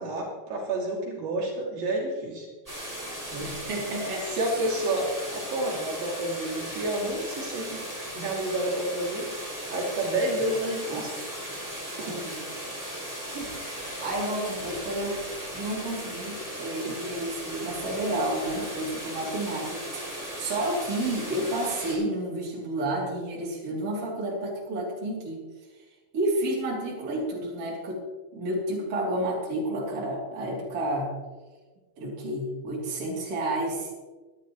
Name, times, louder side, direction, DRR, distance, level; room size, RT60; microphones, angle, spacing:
voice 1, 0.0-2.5 3.3-3.5 4.3-7.9 8.1-9.3 9.7-11.1 11.9-12.2, right 1 dB, 65° right, -4 dB, 4.6 m, -30 dB
sound 1, 2.7-21.9, equal, 5° right, 4.8 m, -37 dB
voice 2, 3.4-4.6 10.4-10.5 10.8-11.4 12.0-12.5 13.3-15.3 15.5-25.9 26.1-28.0 28.3-31.1 32.0-33.9, right 1 dB, 40° right, -4 dB, 4.0 m, -31 dB
24.5 x 11.0 x 3.2 m, 1.3 s
omnidirectional pair, 4.4 m